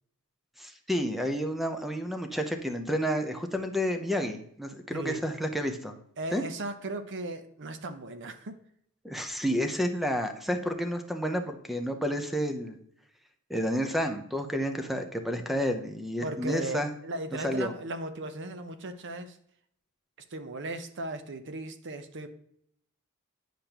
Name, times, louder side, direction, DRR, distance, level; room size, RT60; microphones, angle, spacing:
voice 1, 0.6-6.0 6.3-6.4 9.0-12.8 13.5-16.9 17.4-17.7, equal, ahead, 6 dB, 0.7 m, -30 dB
voice 2, 6.2-8.6 16.2-19.4 20.3-22.3, right 2 dB, 55° right, 9 dB, 0.8 m, -37 dB
9.9 x 5.2 x 2.9 m, 0.70 s
head